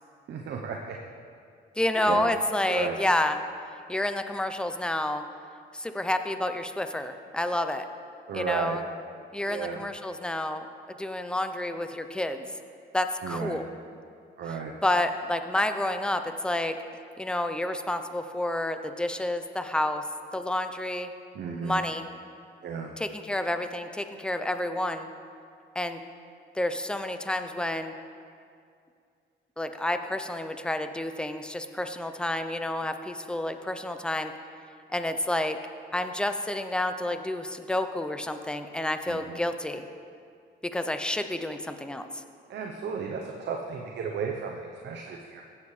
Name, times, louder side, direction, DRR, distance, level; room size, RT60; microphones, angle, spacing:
voice 1, 0.3-1.0 2.1-2.2 2.7-2.9 8.3-8.8 9.5-9.8 13.2-13.6 14.4-14.7 21.3-21.7 22.6-22.9 39.1-39.4 42.5-45.4, right 6 dB, 60° right, 1 dB, 0.8 m, -33 dB
voice 2, 1.8-3.4 3.9-5.2 5.7-7.9 8.3-8.8 9.3-12.5 12.9-13.7 14.5-16.8 17.2-20.0 20.3-21.1 21.6-22.1 23.0-25.1 25.8-26.0 26.5-27.9 29.6-34.3 34.9-35.6 35.9-39.9 40.6-42.2, left 1 dB, 5° left, 8 dB, 0.6 m, -29 dB
16.5 x 7.3 x 3.2 m, 2.3 s
cardioid pair, 90°, 20 cm